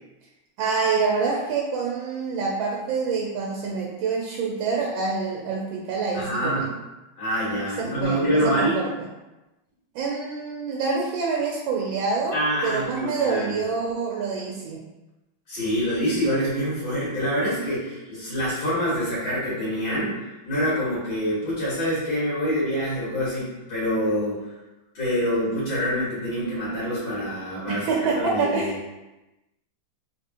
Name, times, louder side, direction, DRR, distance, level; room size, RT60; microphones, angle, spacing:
voice 1, 0.6-6.7 7.8-9.1 9.9-14.8 27.7-28.8, right 4 dB, 80° right, -2 dB, 1.4 m, -26 dB
voice 2, 6.1-6.7 7.2-8.8 12.3-13.5 15.5-24.5 24.9-28.7, equal, 75° left, -10 dB, 2.4 m, -26 dB
3.9 x 3.3 x 2.9 m, 1.0 s
omnidirectional pair, 2.1 m